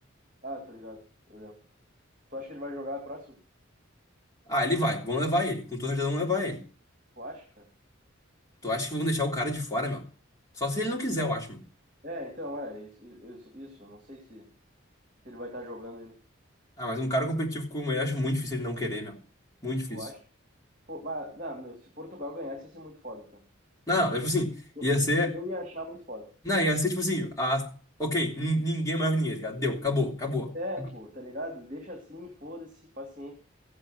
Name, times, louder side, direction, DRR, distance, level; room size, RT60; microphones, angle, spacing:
voice 1, 0.4-1.0 1.3-1.6 2.3-3.4 7.2-7.7 12.0-14.5 15.2-16.2 19.9-20.2 20.9-23.4 24.8-24.9 25.3-26.3 30.5-33.3, equal, 40° right, 2 dB, 2.6 m, -39 dB
voice 2, 4.5-6.6 8.6-10.0 10.6-11.6 16.8-19.2 19.6-20.1 23.9-25.3 26.4-27.7 28.0-30.5, left 1 dB, 15° left, -1 dB, 3.5 m, -28 dB
15.5 x 7.8 x 6.5 m, 0.38 s
head